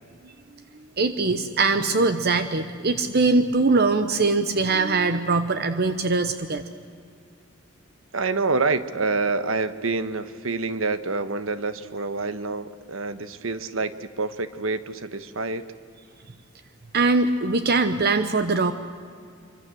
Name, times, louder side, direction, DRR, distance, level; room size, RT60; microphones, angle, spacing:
voice 1, 1.0-6.6 16.9-18.7, right 3 dB, 50° right, 10 dB, 0.9 m, -22 dB
voice 2, 8.1-15.6, right 3 dB, 75° right, 12 dB, 1.3 m, -27 dB
25.5 x 24.5 x 7.8 m, 2.3 s
head